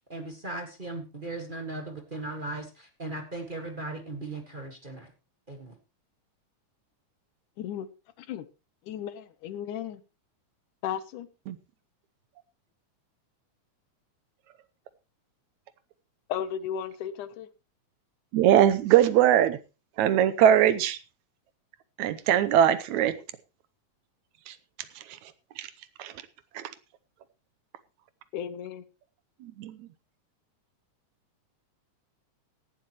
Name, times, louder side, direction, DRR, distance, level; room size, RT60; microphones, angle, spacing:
voice 1, 0.1-5.1 5.5-5.7, right 2 dB, 25° right, 4 dB, 1.3 m, -37 dB
voice 2, 8.9-10.0 10.8-11.3 16.3-17.5 28.3-28.8, left 9 dB, 85° left, 14 dB, 2.5 m, -34 dB
voice 3, 18.3-19.6 20.0-21.0 22.0-23.2 24.5-24.6 25.0-25.7 26.0-26.2 26.5-26.7 29.4-29.9, right 10 dB, 75° right, 14 dB, 2.1 m, -22 dB
17.0 x 11.5 x 3.0 m, 0.29 s
omnidirectional pair, 3.5 m